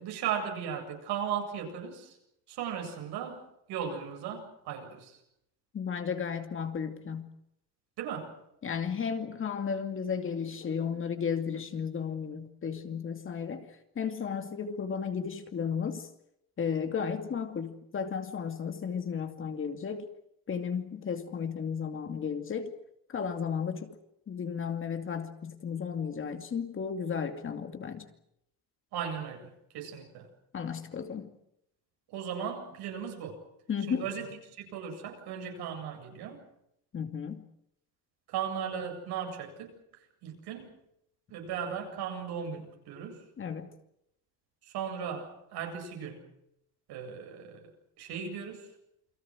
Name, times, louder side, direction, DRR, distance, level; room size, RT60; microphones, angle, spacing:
voice 1, 0.0-2.2 2.5-5.2 8.0-8.3 28.9-30.3 32.1-33.4 33.9-36.4 38.3-39.7 40.2-40.7 41.3-43.2 44.6-46.2 46.9-48.7, right 7 dB, 75° right, 7.8 m, -37 dB
voice 2, 5.7-7.3 8.6-16.1 16.6-20.1 20.5-22.7 23.1-24.0 24.3-28.1 30.5-31.3 33.7-34.1 36.9-37.4 43.4-43.7, left 6 dB, 30° left, 2.5 m, -34 dB
29.0 x 23.0 x 6.3 m
cardioid pair, 155°, 39 cm